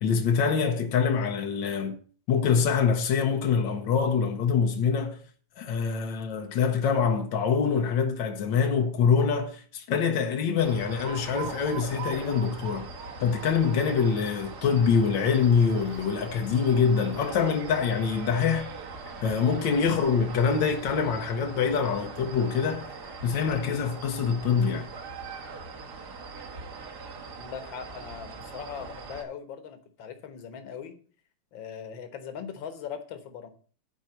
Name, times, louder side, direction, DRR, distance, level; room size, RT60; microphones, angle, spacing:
voice 1, 0.0-2.0 2.3-5.2 5.6-12.9 13.2-18.7 19.2-22.9 23.2-24.9, left 6 dB, 70° left, 1.1 m, -25 dB
sound 1, 10.6-29.2, right 4 dB, 45° right, 1.5 m, -42 dB
Alarm, 10.8-20.9, right 6 dB, 85° right, 3.1 m, -45 dB
voice 2, 27.4-31.0 31.5-33.5, left 7 dB, 55° left, 1.6 m, -40 dB
10.5 x 4.7 x 7.9 m
omnidirectional pair, 3.4 m